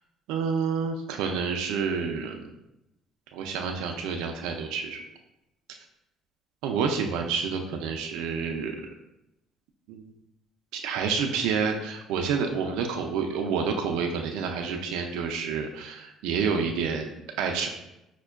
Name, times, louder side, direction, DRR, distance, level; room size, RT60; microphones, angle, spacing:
voice 1, 0.3-2.5 3.3-5.0 6.6-8.7 9.9-10.1 10.7-17.7, right 5 dB, 85° right, 3 dB, 0.3 m, -29 dB
5.1 x 2.1 x 2.3 m, 0.88 s
cardioid pair, 95°, 0 cm